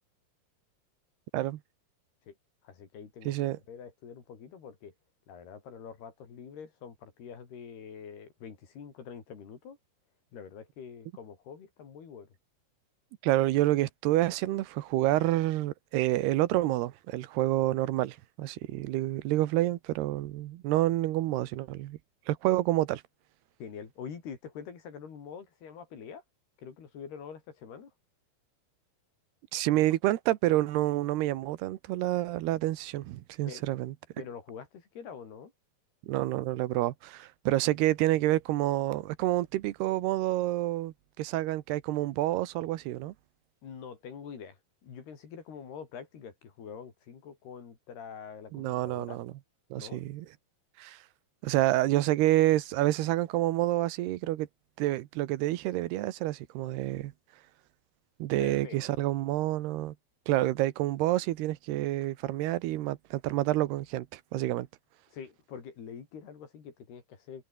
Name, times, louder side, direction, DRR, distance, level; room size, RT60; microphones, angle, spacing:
voice 1, 2.6-4.9 5.3-9.8 10.3-12.3 23.6-26.2 26.6-27.9 33.5-33.6 34.2-35.5 43.6-49.2 49.7-50.0 58.4-58.8 65.1-67.5, left 7 dB, 80° left, 6.1 m, -45 dB
voice 2, 3.3-3.6 13.2-22.0 22.3-23.0 29.5-33.9 36.1-43.1 48.5-49.3 49.7-50.3 50.8-51.0 51.4-54.5 54.8-57.1 58.2-59.9 60.3-64.7, right 16 dB, 85° right, 3.1 m, -28 dB
omnidirectional pair, 4.5 m